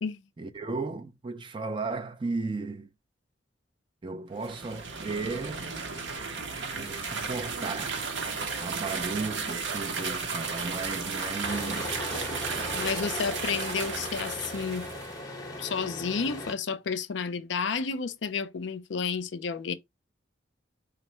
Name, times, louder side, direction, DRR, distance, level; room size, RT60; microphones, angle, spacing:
voice 1, 0.4-2.9 4.0-5.7 6.7-8.1 8.6-12.0, right 3 dB, 25° right, 0.3 m, -35 dB
sound 1, 4.3-15.1, right 4 dB, 75° right, 0.8 m, -34 dB
sound 2, 11.4-16.5, left 1 dB, 20° left, 0.8 m, -38 dB
voice 2, 12.7-14.9 15.6-19.7, left 5 dB, 75° left, 0.5 m, -31 dB
3.9 x 2.1 x 4.3 m
head